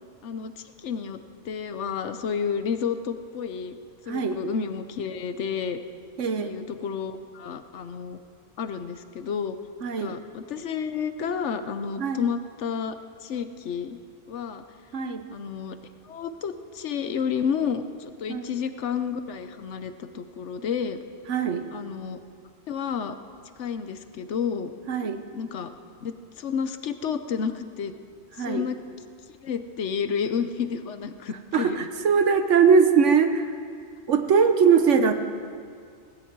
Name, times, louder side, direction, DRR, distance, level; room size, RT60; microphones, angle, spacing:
voice 1, 0.2-1.2 1.4-3.8 4.0-5.8 6.4-8.2 8.6-9.6 10.0-13.0 13.2-14.0 14.3-14.6 15.3-15.8 16.0-21.0 21.7-22.2 22.7-23.2 23.6-24.7 25.3-25.7 26.0-27.9 28.4-28.8 29.4-31.9, left 6 dB, 70° left, 10 dB, 1.1 m, -30 dB
voice 2, 4.1-4.4 6.2-6.5 9.8-10.2 12.0-12.2 14.9-15.2 18.3-18.5 21.3-21.7 24.9-25.2 28.4-28.6 31.5-33.5 34.1-35.1, right 6 dB, 75° right, 8 dB, 1.3 m, -21 dB
18.0 x 16.5 x 4.6 m, 2.2 s
omnidirectional pair, 1.3 m